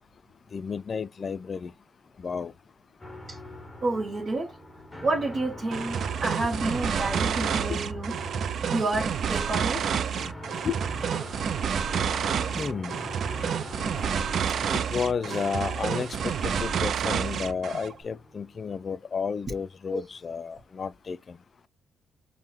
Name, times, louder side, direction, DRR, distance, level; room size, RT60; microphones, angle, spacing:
voice 1, 0.5-1.7 2.2-2.5 10.6-10.7 12.6-12.9 14.0-14.2 14.7-21.4, left 6 dB, 40° left, 0.3 m, -32 dB
sound 1, 3.0-18.9, left 1 dB, 10° left, 0.8 m, -43 dB
voice 2, 3.8-4.6 5.0-8.1 8.7-9.8 19.9-20.0, right 2 dB, 45° right, 0.8 m, -29 dB
sound 2, 5.7-17.9, right 7 dB, 60° right, 0.4 m, -29 dB
5.4 x 2.1 x 3.0 m
cardioid pair, 90°, 0 cm